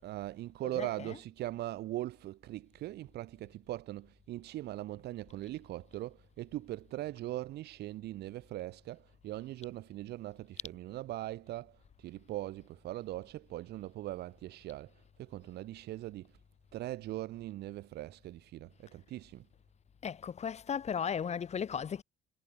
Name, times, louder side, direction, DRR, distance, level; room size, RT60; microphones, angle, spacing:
voice 1, 0.0-14.9 15.2-16.3 16.7-19.5, right 15 dB, 75° right, 4.9 m, -41 dB
voice 2, 0.6-1.2 20.0-22.0, left 7 dB, 40° left, 4.8 m, -36 dB
cardioid pair, 110°, 17 cm